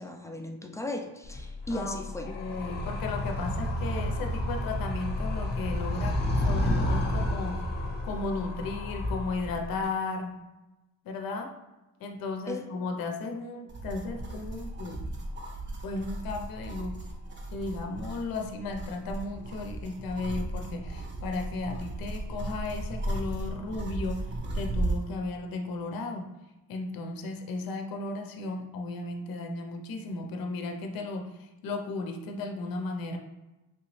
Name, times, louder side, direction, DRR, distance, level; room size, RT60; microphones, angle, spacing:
voice 1, 0.0-2.3 12.5-12.7, left 2 dB, 10° left, 3 dB, 0.3 m, -36 dB
Animal, 1.2-9.8, left 1 dB, 30° left, 0.8 m, -31 dB
voice 2, 1.7-2.0 2.4-7.6 8.0-10.3 11.1-11.5 12.0-15.0 15.8-16.9 17.5-24.2 24.5-26.3 26.7-33.2, left 3 dB, 70° left, 4 dB, 0.6 m, -35 dB
sound 1, 13.7-25.1, right 1 dB, 30° right, 0.6 m, -36 dB
3.2 x 2.9 x 3.1 m, 1.0 s
cardioid pair, 100°, 37 cm